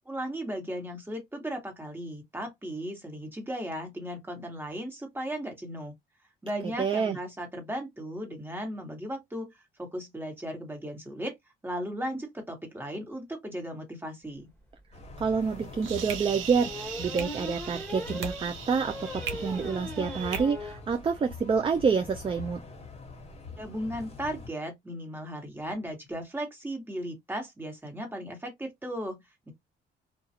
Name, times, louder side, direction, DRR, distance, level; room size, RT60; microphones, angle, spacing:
voice 1, 0.0-5.9 6.4-11.3 11.6-14.5 23.6-29.5, equal, 10° right, 1.3 m, -36 dB
voice 2, 6.8-7.2 15.2-22.6, right 5 dB, 25° right, 0.4 m, -28 dB
sound 1, 14.8-14.9 15.3-15.4 16.5-20.8 21.2-21.3 21.6-21.7 21.9-22.1, left 1 dB, 5° left, 1.3 m, -40 dB
sound 2, 14.9-24.5, left 4 dB, 30° left, 1.2 m, -44 dB
sound 3, 15.4-20.4, right 6 dB, 90° right, 0.6 m, -39 dB
2.3 x 2.3 x 2.7 m
cardioid pair, 90°, 20 cm